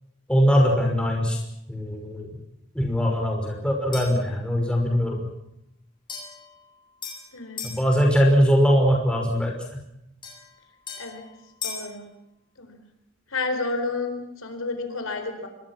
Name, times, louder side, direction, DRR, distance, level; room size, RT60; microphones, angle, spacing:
voice 1, 0.3-1.4 1.7-2.3 2.7-5.2 7.6-9.8, equal, 5° left, 0 dB, 5.6 m, -21 dB
sound 1, 3.9-4.3 6.1-7.8 10.2-11.9, left 6 dB, 25° left, 7.6 m, -38 dB
voice 2, 7.3-7.7 11.0-11.2 11.6-12.1 12.6-12.8 13.3-15.5, left 3 dB, 75° left, 7 dB, 4.6 m, -30 dB
26.5 x 23.5 x 6.1 m, 0.85 s
head